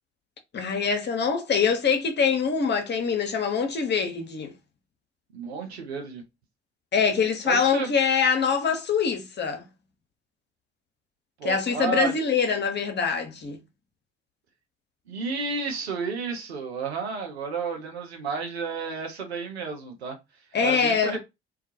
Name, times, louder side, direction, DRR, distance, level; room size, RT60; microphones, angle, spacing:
voice 1, 0.5-4.5 6.9-9.6 11.4-13.6 20.5-21.2, left 6 dB, 35° left, 0.7 m, -24 dB
voice 2, 5.3-6.2 7.4-7.9 11.4-12.1 15.1-20.2 20.6-21.2, right 5 dB, 85° right, 0.6 m, -31 dB
2.3 x 2.2 x 2.7 m
figure-of-eight pair, 45°, 31 cm